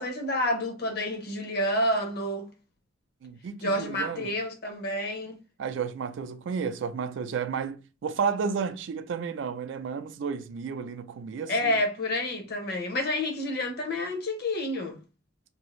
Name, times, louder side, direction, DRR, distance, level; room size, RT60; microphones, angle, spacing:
voice 1, 0.0-2.5 3.6-5.4 11.5-15.0, left 1 dB, 50° left, 0.7 m, -29 dB
voice 2, 3.2-4.3 5.6-11.8, right 6 dB, 65° right, 0.3 m, -32 dB
2.7 x 2.4 x 3.0 m
head